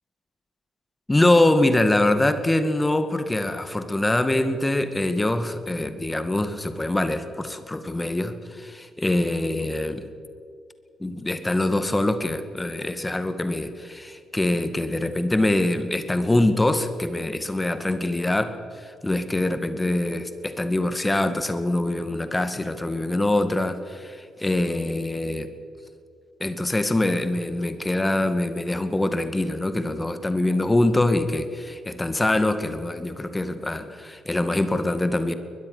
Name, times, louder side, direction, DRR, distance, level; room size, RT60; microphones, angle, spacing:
voice 1, 1.1-10.1 11.0-25.5 26.4-35.3, left 1 dB, 15° left, 10 dB, 2.2 m, -24 dB
23.0 x 21.0 x 6.8 m, 2.2 s
figure-of-eight pair, 40°, 0 cm